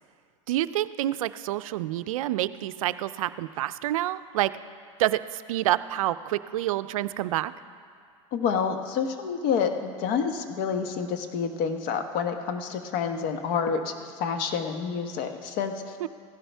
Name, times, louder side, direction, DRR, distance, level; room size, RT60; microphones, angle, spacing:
voice 1, 0.5-4.5 5.0-7.5 16.0-16.1, right 14 dB, 80° right, 15 dB, 0.4 m, -28 dB
voice 2, 8.3-16.0, left 6 dB, 55° left, 7 dB, 1.1 m, -28 dB
16.0 x 11.0 x 3.4 m, 2.2 s
hypercardioid pair, 95°, 17 cm